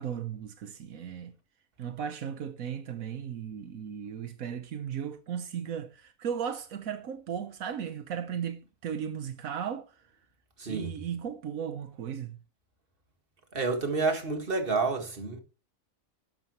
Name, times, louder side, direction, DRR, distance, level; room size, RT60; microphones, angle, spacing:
voice 1, 0.0-1.3 1.8-9.9 10.7-12.4, right 8 dB, 85° right, 1.4 m, -36 dB
voice 2, 10.6-10.9 13.5-15.4, right 3 dB, 40° right, 2.1 m, -29 dB
12.5 x 11.0 x 3.1 m
omnidirectional pair, 1.4 m